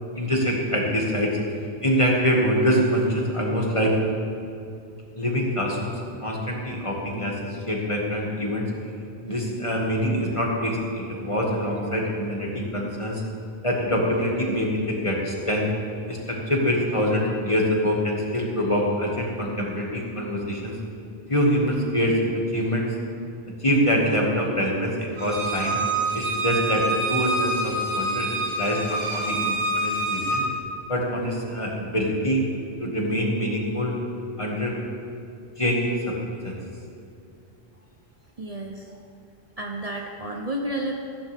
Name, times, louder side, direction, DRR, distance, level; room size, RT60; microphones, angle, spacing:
voice 1, 0.2-1.4 1.8-4.0 5.2-5.9 6.2-8.7 9.2-13.2 13.6-15.7 16.1-20.8 21.3-22.2 22.5-22.9 23.6-25.8 26.1-30.5 30.9-32.4 32.8-34.0 34.4-34.8 35.6-36.2 36.4-36.6, equal, 30° left, -2 dB, 2.2 m, -25 dB
Bowed string instrument, 25.2-30.4, right 2 dB, 65° right, 3.4 m, -26 dB
voice 2, 38.4-39.0 39.6-40.9, right 1 dB, 40° right, 0 dB, 1.1 m, -31 dB
15.0 x 14.5 x 3.7 m, 2.5 s
omnidirectional pair, 1.0 m